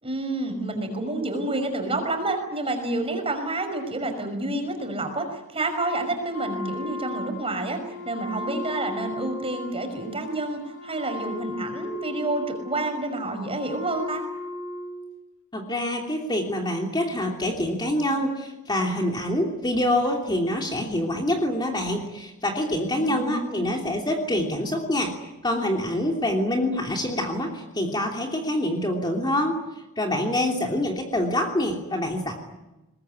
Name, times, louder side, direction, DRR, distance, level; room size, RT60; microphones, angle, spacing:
voice 1, 0.0-7.8 8.0-14.2 22.9-23.7, right 2 dB, 25° right, 5 dB, 5.7 m, -29 dB
Wind instrument woodwind instrument, 6.3-15.1, left 2 dB, 75° left, 6.7 m, -36 dB
voice 2, 15.5-25.1 25.4-29.6 30.0-32.3, left 1 dB, 20° left, 1 dB, 3.1 m, -26 dB
23.0 x 21.5 x 9.8 m, 0.98 s
head